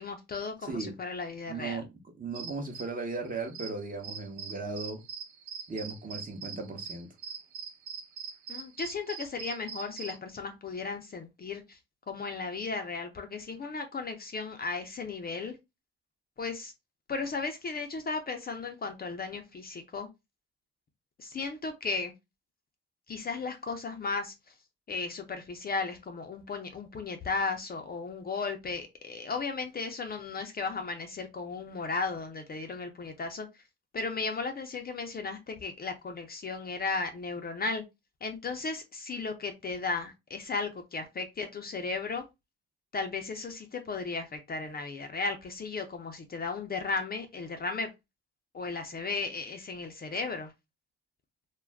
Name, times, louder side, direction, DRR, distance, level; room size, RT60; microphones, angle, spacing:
voice 1, 0.0-1.8 8.5-11.8 12.1-15.6 16.4-16.7 17.1-20.1 21.2-22.1 23.1-24.5 24.9-33.5 33.9-37.8 38.2-42.2 42.9-47.9 48.5-50.5, left 4 dB, 30° left, 0.5 m, -35 dB
voice 2, 0.6-1.0 1.5-1.9 2.2-5.0 5.7-7.1, right 3 dB, 30° right, 0.8 m, -37 dB
sound 1, 2.4-10.2, right 6 dB, 80° right, 0.7 m, -42 dB
2.3 x 2.1 x 3.3 m
cardioid pair, 90°, 30 cm